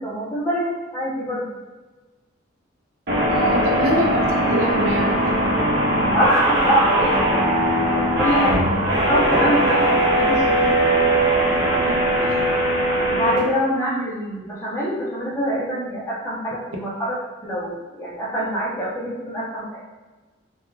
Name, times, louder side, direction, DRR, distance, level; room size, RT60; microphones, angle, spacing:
voice 1, 0.0-1.5 3.4-3.7 6.1-7.4 8.2-11.1 12.3-12.5 13.0-17.1 17.4-19.8, equal, 15° left, -7 dB, 0.6 m, -25 dB
sound 1, 3.1-13.4, right 1 dB, 55° right, 0.8 m, -20 dB
voice 2, 3.3-5.1 11.8-12.0, right 1 dB, 80° right, 0 dB, 0.5 m, -24 dB
2.3 x 2.3 x 3.0 m, 1.2 s
head